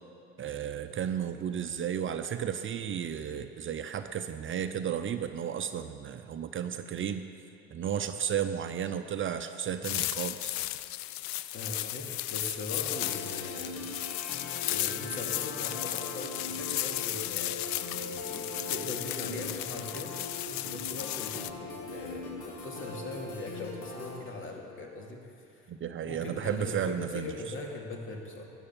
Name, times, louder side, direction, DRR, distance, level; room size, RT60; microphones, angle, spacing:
voice 1, 0.4-7.3 7.7-10.6 25.7-27.3, right 8 dB, 40° right, 8 dB, 0.7 m, -33 dB
sound 1, 9.8-21.5, left 16 dB, 65° left, 0.5 m, -35 dB
voice 2, 11.5-13.8 14.2-14.3 14.7-20.1 20.5-25.7 26.0-28.4, left 2 dB, 40° left, 0 dB, 2.6 m, -41 dB
sound 2, 12.9-24.2, left 2 dB, 80° left, 2.1 m, -41 dB
13.0 x 9.1 x 7.2 m, 2.7 s
supercardioid pair, 75°, 31 cm